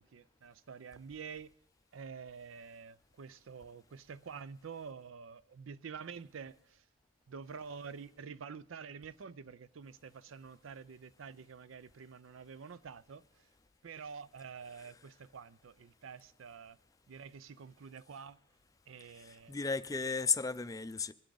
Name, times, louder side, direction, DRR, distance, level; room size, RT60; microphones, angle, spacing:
voice 1, 0.0-1.5 1.9-6.8 7.3-13.5 13.8-16.8 17.1-18.4 18.9-19.6, right 6 dB, 85° right, 0.5 m, -48 dB
voice 2, 19.2-21.1, left 5 dB, 20° left, 0.4 m, -34 dB
23.5 x 8.3 x 3.9 m
head